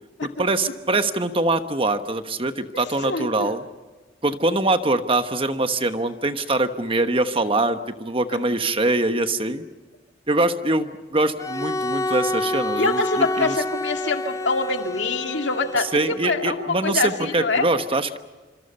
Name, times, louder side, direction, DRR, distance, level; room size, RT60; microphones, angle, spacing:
voice 1, 0.2-3.6 4.2-9.6 10.3-13.5 15.8-18.2, right 2 dB, 30° right, 9 dB, 1.2 m, -23 dB
voice 2, 2.7-3.5 12.8-17.7, left 3 dB, 75° left, 5 dB, 2.3 m, -25 dB
Bowed string instrument, 11.4-16.4, left 2 dB, 20° left, 0.6 m, -28 dB
27.0 x 26.0 x 5.5 m, 1.3 s
head